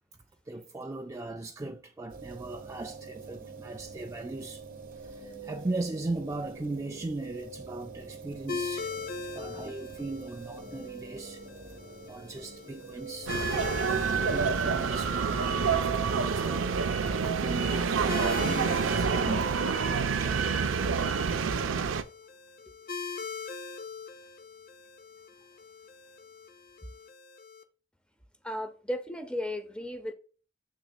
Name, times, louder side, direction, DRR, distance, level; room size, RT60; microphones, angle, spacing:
voice 1, 0.5-4.6 4.9-9.0 9.4-11.4 12.1-13.4 13.8-19.5 20.2-20.5, right 2 dB, 15° right, 0.3 m, -38 dB
sound 1, 2.1-21.4, right 4 dB, 50° right, 0.9 m, -45 dB
sound 2, 8.5-27.6, left 5 dB, 50° left, 0.6 m, -42 dB
sound 3, 13.3-22.0, right 5 dB, 85° right, 0.5 m, -28 dB
voice 2, 28.4-30.1, left 1 dB, 5° left, 0.7 m, -35 dB
7.2 x 6.2 x 2.3 m
head